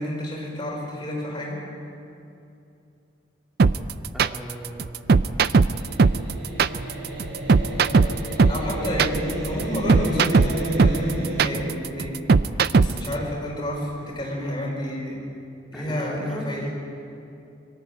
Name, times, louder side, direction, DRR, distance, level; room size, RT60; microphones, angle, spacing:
voice 1, 0.0-1.6 8.5-12.2 12.7-15.3 15.7-16.7, equal, 25° left, -2 dB, 5.0 m, -30 dB
sound 1, 3.6-13.1, right 4 dB, 50° right, 0.4 m, -18 dB
voice 2, 4.1-5.2 12.9-13.2 15.7-16.5, equal, ahead, -3 dB, 3.2 m, -38 dB
sound 2, 5.8-11.6, right 1 dB, 80° right, 6.0 m, -31 dB
23.0 x 14.0 x 9.0 m, 2.7 s
head